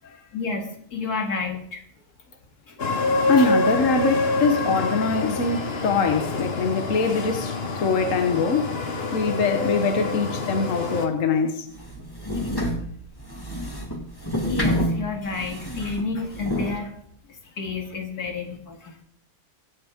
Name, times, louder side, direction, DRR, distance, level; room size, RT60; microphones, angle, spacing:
voice 1, 0.3-1.8 2.7-2.8 3.4-3.5 12.3-12.5 14.5-16.9 17.3-19.0, left 4 dB, 85° left, 2.7 m, -31 dB
sound 1, 2.8-11.1, left 2 dB, 45° left, 1.4 m, -26 dB
voice 2, 3.3-8.7 9.1-11.7, left 4 dB, 60° left, 1.5 m, -23 dB
sound 2, 11.7-16.8, equal, 15° left, 2.0 m, -28 dB
24.0 x 9.0 x 3.7 m
omnidirectional pair, 1.6 m